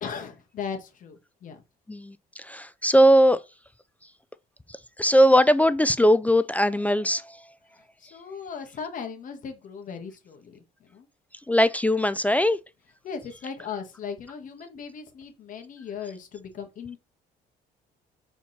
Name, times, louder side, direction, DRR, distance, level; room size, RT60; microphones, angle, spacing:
voice 1, 0.0-1.6 8.0-11.1 13.0-17.0, left 6 dB, 50° left, 1.9 m, -37 dB
voice 2, 1.9-3.4 5.0-7.4 11.5-12.6, equal, 10° left, 0.4 m, -20 dB
4.4 x 4.4 x 5.8 m
cardioid pair, 110°, 17 cm